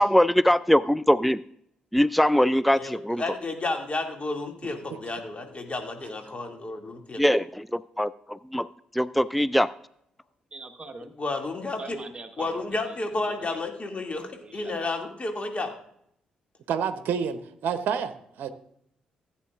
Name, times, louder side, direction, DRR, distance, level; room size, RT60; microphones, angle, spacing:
voice 1, 0.0-1.4 1.9-3.2 7.2-8.7 8.9-9.7, equal, ahead, 17 dB, 0.3 m, -22 dB
voice 2, 2.7-7.2 11.2-12.0 12.4-15.7, left 2 dB, 35° left, 3 dB, 2.2 m, -31 dB
voice 3, 10.5-11.1 11.8-13.0 13.2-13.6 14.3-14.9, right 3 dB, 25° right, 4 dB, 1.2 m, -43 dB
voice 4, 16.7-18.1 18.4-18.5, right 7 dB, 65° right, 11 dB, 0.8 m, -28 dB
15.5 x 8.6 x 2.4 m, 0.71 s
hypercardioid pair, 40°, 4 cm